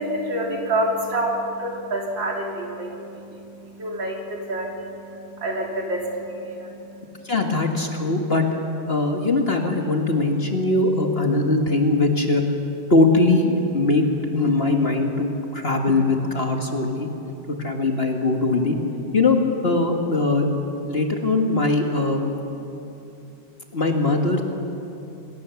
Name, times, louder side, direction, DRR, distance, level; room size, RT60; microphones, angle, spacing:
voice 1, 0.0-7.1, right 1 dB, 75° right, -1 dB, 4.0 m, -28 dB
voice 2, 7.2-8.4 8.9-12.4 12.9-17.1 17.5-18.8 19.1-19.4 19.6-20.5 20.9-22.2 23.7-24.4, left 2 dB, 35° left, 2 dB, 1.7 m, -21 dB
27.0 x 17.0 x 7.0 m, 2.8 s
omnidirectional pair, 2.1 m